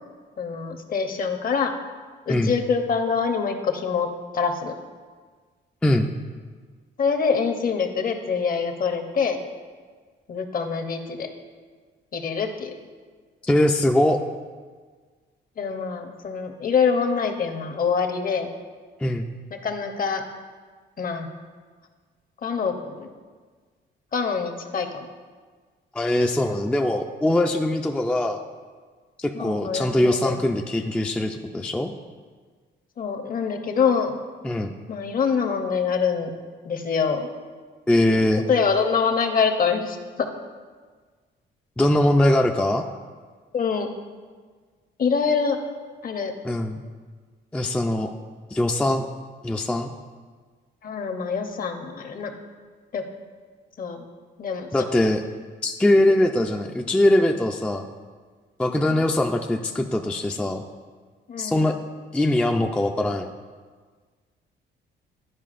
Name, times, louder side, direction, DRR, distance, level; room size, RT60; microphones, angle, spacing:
voice 1, 0.4-1.7 2.3-4.1 4.3-4.7 7.0-9.4 10.3-11.3 12.1-12.7 15.6-18.5 19.5-20.2 21.0-21.3 22.4-23.1 24.1-25.0 29.3-30.4 33.0-34.1 34.9-36.3 36.6-37.3 38.5-40.3 43.5-43.9 45.0-45.6 46.0-46.3 50.8-52.3 52.9-53.0 53.8-54.0 54.4-54.7 58.7-59.0 61.3-61.7, left 5 dB, 45° left, 6 dB, 0.7 m, -25 dB
voice 2, 13.4-14.2 19.0-19.3 25.9-28.4 29.2-31.9 34.4-34.7 37.9-38.4 41.8-42.8 46.4-46.8 47.5-48.1 48.5-49.1 49.4-49.9 54.7-55.2 55.6-57.9 58.6-60.6 61.4-61.8 62.1-63.3, left 1 dB, 5° left, 3 dB, 0.3 m, -22 dB
11.0 x 4.7 x 2.5 m, 1.5 s
cardioid pair, 90°, 20 cm